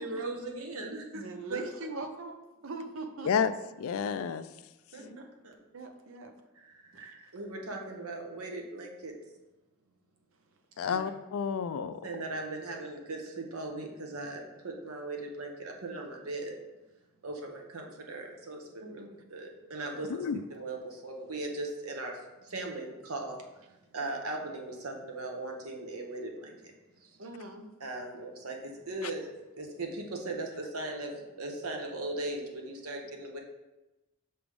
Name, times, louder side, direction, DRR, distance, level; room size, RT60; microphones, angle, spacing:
voice 1, 0.0-1.0 1.5-1.7 4.9-5.0 5.4-5.5 7.3-9.1 10.8-11.0 12.0-16.5 17.2-19.0 19.3-20.2 20.5-20.8 21.0-22.1 22.5-23.4 23.9-26.5 27.8-29.3 29.6-33.4, right 2 dB, 75° right, 2 dB, 1.0 m, -38 dB
voice 2, 1.1-3.3 4.9-5.3 5.7-6.3 6.9-7.3 18.8-19.1 27.2-27.7, right 2 dB, 60° right, 5 dB, 0.7 m, -42 dB
voice 3, 3.8-4.5 10.8-12.0 20.2-20.4, left 7 dB, 70° left, 12 dB, 0.3 m, -30 dB
6.0 x 3.3 x 5.2 m, 1.0 s
head